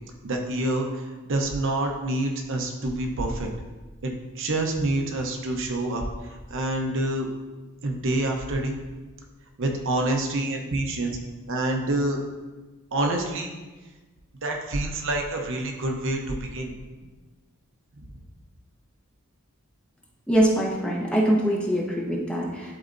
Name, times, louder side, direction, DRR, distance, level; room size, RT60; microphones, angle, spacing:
voice 1, 0.2-3.5 4.0-6.0 6.5-7.3 7.8-8.8 9.6-11.2 11.5-12.2 12.9-13.5 14.4-16.7, right 1 dB, 60° right, 2 dB, 0.8 m, -27 dB
voice 2, 20.3-22.7, right 1 dB, 5° left, -3 dB, 1.0 m, -23 dB
11.5 x 4.0 x 2.6 m, 1.2 s
head